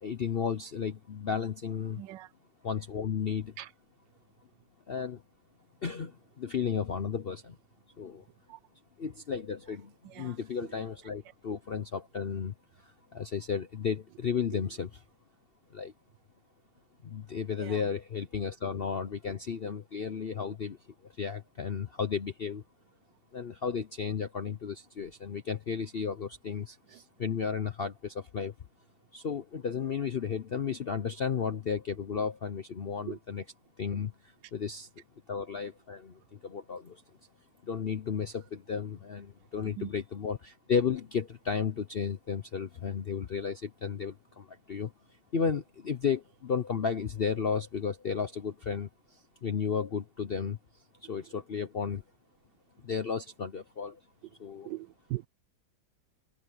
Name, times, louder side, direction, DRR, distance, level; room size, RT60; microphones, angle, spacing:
voice 1, 0.0-2.0 2.6-3.5 4.9-5.2 5.8-7.6 8.0-8.2 9.0-14.9 15.7-15.9 17.0-20.8 21.2-22.6 23.3-28.5 29.1-33.4 33.8-34.9 35.3-37.0 37.6-44.9 45.3-50.6 51.0-52.0 52.8-54.0 54.4-54.7, left 6 dB, 70° left, 0.5 m, -33 dB
voice 2, 1.9-2.3 3.6-3.7 8.5-8.6 10.0-10.7 14.5-14.6 17.6-17.8 26.9-27.0 33.1-33.2 39.6-39.9 54.6-55.3, right 16 dB, 75° right, 1.2 m, -41 dB
omnidirectional pair, 2.1 m